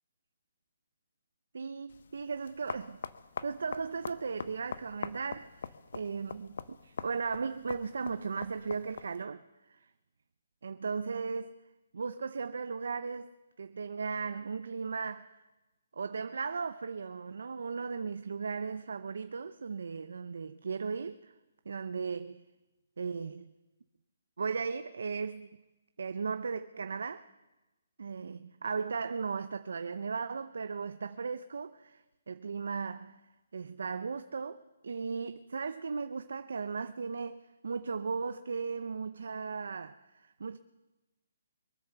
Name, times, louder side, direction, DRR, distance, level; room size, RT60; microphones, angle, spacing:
voice 1, 1.5-3.0 3.4-9.4 9.7-9.8 10.6-11.6 11.9-15.4 15.9-21.3 21.7-22.4 23.0-23.5 24.4-25.5 26.0-27.3 28.0-33.2 33.5-40.6, right 5 dB, 75° right, 0.6 m, -37 dB
sound 1, 1.9-9.2, left 5 dB, 60° left, 0.7 m, -44 dB
23.0 x 7.9 x 7.0 m
hypercardioid pair, 175°, 0 cm